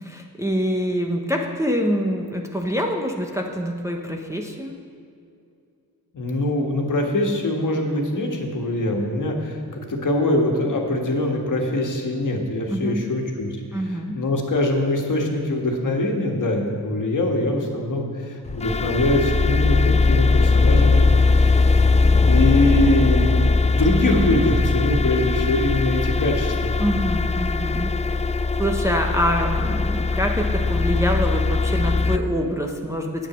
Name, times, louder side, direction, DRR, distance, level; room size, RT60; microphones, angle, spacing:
voice 1, 0.0-4.7 12.7-13.0 13.7-14.2 26.8-28.2 28.6-33.3, equal, 5° right, 1 dB, 0.8 m, -25 dB
voice 2, 6.1-21.8 22.3-26.8, left 1 dB, 50° left, 1 dB, 1.7 m, -23 dB
sound 1, 18.5-32.2, left 3 dB, 20° left, 0.3 m, -20 dB
8.9 x 8.3 x 6.1 m, 2.4 s
cardioid pair, 75°, 39 cm